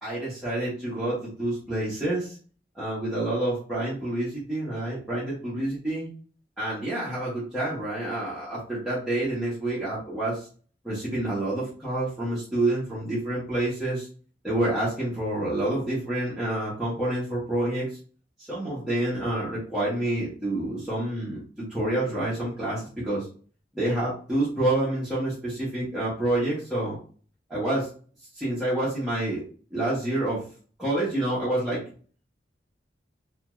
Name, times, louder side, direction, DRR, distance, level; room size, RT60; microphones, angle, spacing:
voice 1, 0.0-2.4 2.7-6.1 6.6-10.5 10.8-14.1 14.4-17.9 18.5-23.2 23.7-27.0 27.5-27.9 28.3-29.4 29.7-30.4 30.8-31.8, right 1 dB, 5° right, -10 dB, 1.0 m, -28 dB
2.5 x 2.3 x 3.0 m, 0.41 s
head